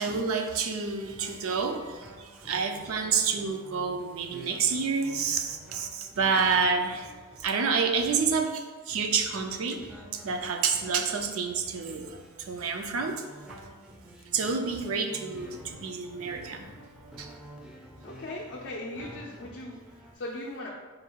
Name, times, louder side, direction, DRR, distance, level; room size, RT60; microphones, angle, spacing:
voice 1, 0.0-7.1 7.4-13.2 13.5-13.6 14.3-16.7 17.2-17.3, right 5 dB, 65° right, 5 dB, 0.4 m, -29 dB
sound 1, 0.9-20.1, equal, 5° right, 0.4 m, -49 dB
voice 2, 18.0-19.8 20.1-20.7, left 1 dB, 55° left, -3 dB, 0.4 m, -38 dB
3.8 x 2.3 x 4.4 m, 1.4 s
head